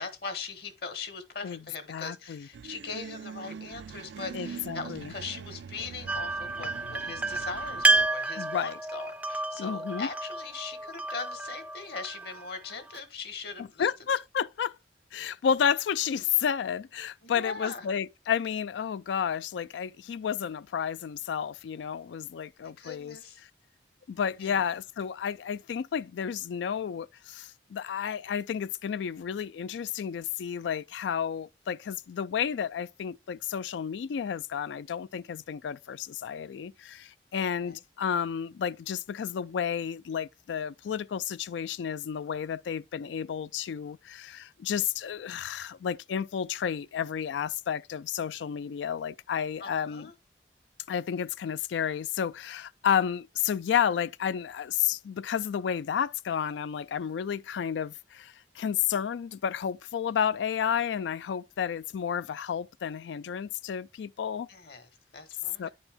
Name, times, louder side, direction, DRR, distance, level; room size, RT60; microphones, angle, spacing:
voice 1, 0.0-13.9 17.2-17.9 22.6-23.4 24.4-24.6 37.3-37.8 49.6-50.1 64.5-65.7, left 4 dB, 60° left, 1.3 m, -40 dB
voice 2, 1.9-2.5 4.3-5.1 8.4-8.8 9.6-10.1 13.6-14.8 15.1-23.2 24.1-50.1 50.9-64.5 65.6-65.7, left 8 dB, 85° left, 0.3 m, -31 dB
sound 1, 2.5-8.1, right 6 dB, 80° right, 0.3 m, -43 dB
sound 2, 6.1-13.0, right 2 dB, 10° right, 0.4 m, -30 dB
9.8 x 4.3 x 3.5 m
head